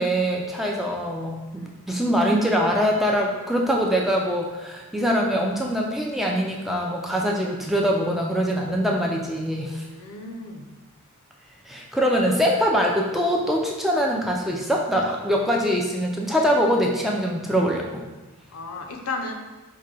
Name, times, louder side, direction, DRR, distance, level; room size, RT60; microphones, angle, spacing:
voice 1, 0.0-9.8 11.7-18.1, equal, ahead, -1 dB, 0.3 m, -23 dB
voice 2, 9.9-10.7 18.5-19.3, left 3 dB, 75° left, 3 dB, 0.5 m, -34 dB
4.6 x 2.2 x 3.2 m, 1.1 s
head